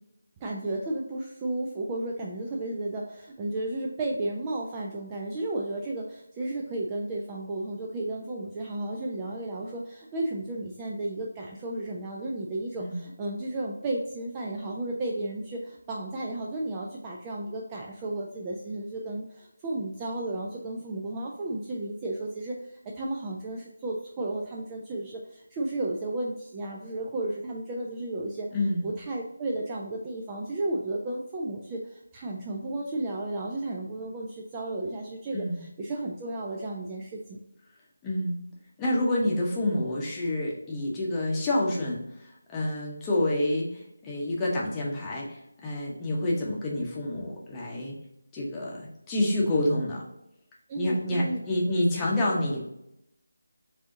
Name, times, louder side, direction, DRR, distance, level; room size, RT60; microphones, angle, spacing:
voice 1, 0.4-28.5 28.8-37.4 50.7-51.4, right 2 dB, 15° right, -2 dB, 0.4 m, -33 dB
voice 2, 28.5-28.9 35.3-35.6 38.0-38.4 38.8-48.0 48.3-50.0 50.7-52.6, left 1 dB, 10° left, -5 dB, 0.9 m, -28 dB
4.8 x 2.7 x 3.7 m, 0.82 s
figure-of-eight pair, 160°, 0 cm